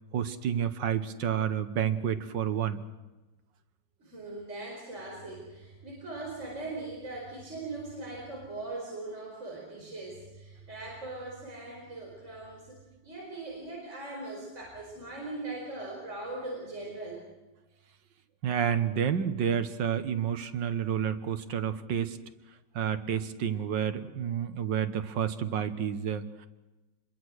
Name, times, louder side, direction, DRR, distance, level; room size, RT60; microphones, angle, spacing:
voice 1, 0.1-2.8 18.4-22.2 22.8-26.5, right 8 dB, 85° right, 10 dB, 1.8 m, -30 dB
voice 2, 4.0-17.2, right 2 dB, 40° right, -3 dB, 5.1 m, -40 dB
25.5 x 21.5 x 6.4 m, 1.1 s
omnidirectional pair, 1.9 m